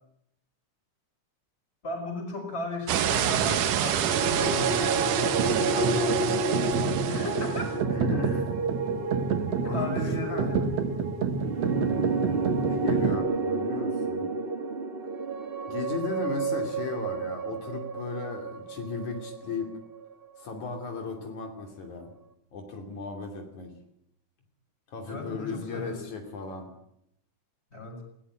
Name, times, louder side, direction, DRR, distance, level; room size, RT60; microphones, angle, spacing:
voice 1, 1.8-5.3 5.6-6.3 7.1-7.9 9.6-10.7 25.0-26.0 27.7-28.0, left 2 dB, 20° left, 4 dB, 5.1 m, -36 dB
sound 1, 2.9-7.7, right 9 dB, 90° right, 2.8 m, -28 dB
sound 2, 3.9-20.2, right 3 dB, 40° right, 0.8 m, -30 dB
sound 3, 5.2-13.2, right 6 dB, 60° right, 2.5 m, -30 dB
voice 2, 7.9-8.5 9.6-10.5 12.6-14.3 15.7-19.8 20.4-22.1 22.5-23.7 24.9-26.7, left 4 dB, 70° left, 4 dB, 4.3 m, -35 dB
20.0 x 17.0 x 9.9 m, 0.76 s
omnidirectional pair, 3.5 m